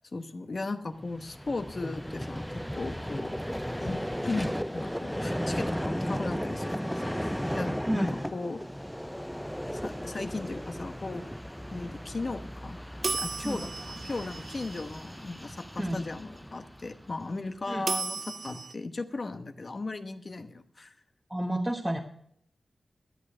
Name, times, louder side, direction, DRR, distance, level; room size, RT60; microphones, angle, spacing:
voice 1, 0.1-3.3 3.8-8.6 9.7-11.2 11.7-12.8 13.1-20.9, left 3 dB, 50° left, 8 dB, 1.1 m, -37 dB
Vehicle, 1.0-17.3, equal, 5° left, 0.3 m, -35 dB
sound 1, 13.0-15.3 17.9-18.7, right 4 dB, 60° right, 0.5 m, -35 dB
voice 2, 21.3-22.0, right 1 dB, 15° right, -1 dB, 1.2 m, -31 dB
12.5 x 8.7 x 5.6 m, 0.68 s
wide cardioid pair, 70°, 0 cm